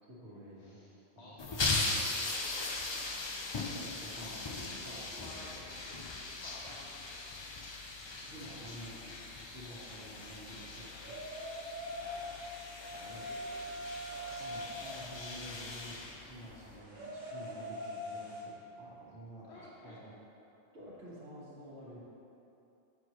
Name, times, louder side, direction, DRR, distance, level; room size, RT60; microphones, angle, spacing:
voice 1, 0.1-0.8 1.1-1.4 3.7-5.4 8.2-11.2 13.0-13.2 14.4-20.1 20.7-22.0, equal, 85° right, -7 dB, 1.8 m, -50 dB
voice 2, 0.6-3.1 4.1-7.2 12.0-12.4 12.8-13.7 14.1-14.4 19.5-20.0, left 2 dB, 80° left, -5 dB, 1.0 m, -53 dB
sound 1, 1.4-16.8, left 3 dB, 45° left, 0.3 m, -39 dB
sound 2, 8.0-18.4, equal, 45° right, 1.4 m, -45 dB
7.1 x 6.2 x 3.0 m, 2.8 s
omnidirectional pair, 1.1 m